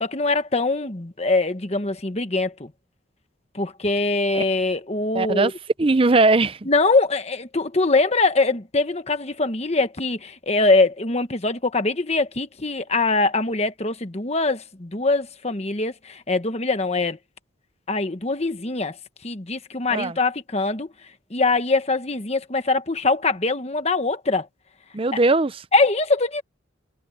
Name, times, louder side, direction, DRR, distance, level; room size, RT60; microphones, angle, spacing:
voice 1, 0.0-2.7 3.5-5.5 6.7-17.2 17.9-18.9 19.2-20.9 21.3-24.5 25.1-25.2 25.7-26.4, left 3 dB, 30° left, 1.2 m, -23 dB
voice 2, 5.1-5.5 5.8-6.7 19.9-20.2 24.9-25.6, right 3 dB, 30° right, 0.6 m, -19 dB
head